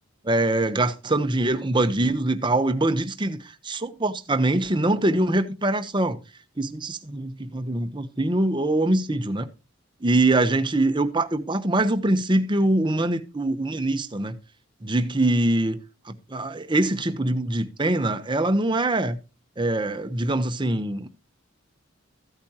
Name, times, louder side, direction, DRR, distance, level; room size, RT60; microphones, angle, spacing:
voice 1, 0.2-3.4 3.6-6.2 6.6-9.5 10.0-14.4 14.8-15.8 16.1-19.2 19.6-21.1, right 2 dB, 25° right, 0.9 m, -23 dB
15.0 x 8.5 x 2.9 m
head